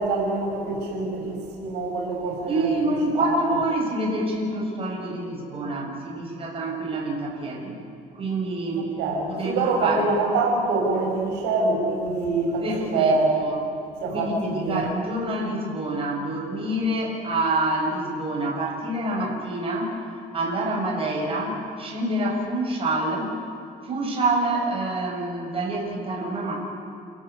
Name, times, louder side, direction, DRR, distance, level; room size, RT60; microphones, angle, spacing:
voice 1, 0.0-2.9 3.2-3.5 9.0-13.4 14.0-14.8, right 3 dB, 85° right, 1 dB, 6.4 m, -25 dB
voice 2, 2.5-7.8 8.1-9.0 9.3-10.0 12.6-13.2 13.4-13.6 14.1-19.9 20.3-23.4 23.8-26.6, right 2 dB, 35° right, -2 dB, 7.8 m, -27 dB
29.5 x 17.5 x 8.6 m, 2.7 s
cardioid pair, 110°, 17 cm